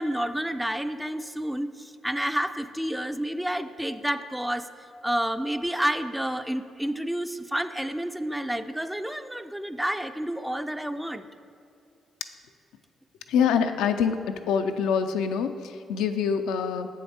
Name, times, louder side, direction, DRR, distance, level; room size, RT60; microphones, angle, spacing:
voice 1, 0.0-4.7 5.0-11.3, right 1 dB, 5° right, 10 dB, 0.3 m, -29 dB
voice 2, 13.3-14.2 14.5-16.9, left 7 dB, 90° left, 7 dB, 0.4 m, -25 dB
7.2 x 6.5 x 4.3 m, 2.5 s
cardioid pair, 70°, 0 cm